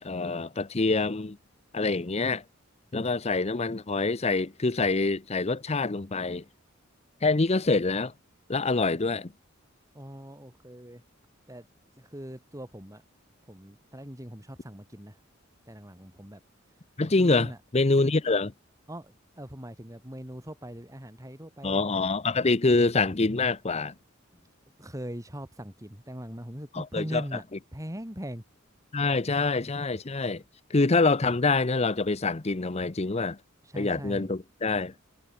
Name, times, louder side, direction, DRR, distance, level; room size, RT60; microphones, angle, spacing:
voice 1, 0.0-1.4 1.7-2.4 2.9-6.4 7.2-8.1 8.5-9.3 17.0-17.5 17.7-18.5 21.6-23.9 26.7-27.4 28.9-30.4 30.7-33.4 33.8-34.9, left 3 dB, 30° left, 0.8 m, -25 dB
voice 2, 9.9-11.0 11.5-11.7 12.0-13.0 13.5-15.2 15.7-16.4 17.2-17.6 18.0-18.1 18.9-21.9 24.8-27.4 27.7-28.4 33.6-34.3, equal, 15° right, 4.0 m, -40 dB
head